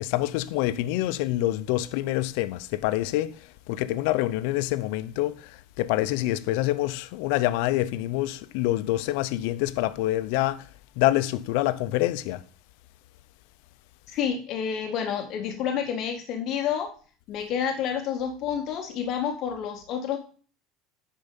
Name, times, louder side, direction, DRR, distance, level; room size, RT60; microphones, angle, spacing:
voice 1, 0.0-3.3 3.7-5.5 5.8-10.6 11.0-12.4, left 15 dB, 80° left, 0.5 m, -26 dB
voice 2, 14.1-16.9 17.3-20.2, left 8 dB, 55° left, 0.9 m, -29 dB
10.5 x 4.6 x 5.3 m
supercardioid pair, 115°, 0 cm